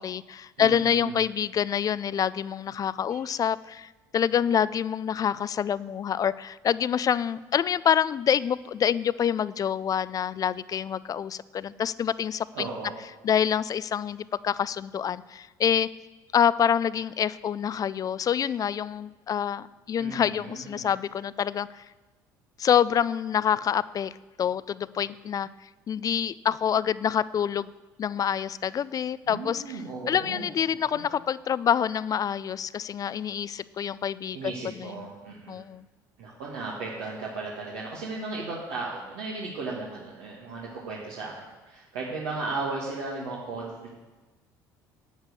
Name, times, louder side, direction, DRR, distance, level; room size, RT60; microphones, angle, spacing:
voice 1, 0.0-12.7 13.2-15.9 16.3-21.8 22.6-24.1 24.4-25.5 25.9-27.7 28.0-29.8 30.1-34.4 34.8-35.1 35.5-35.9, left 8 dB, 35° left, 18 dB, 0.4 m, -26 dB
voice 2, 0.6-1.2 3.1-3.2 12.5-13.0 20.0-20.8 29.3-31.0 34.3-35.6 36.2-43.9, right 3 dB, 70° right, -4 dB, 2.0 m, -36 dB
9.1 x 8.9 x 6.6 m, 1.2 s
hypercardioid pair, 60°, 10 cm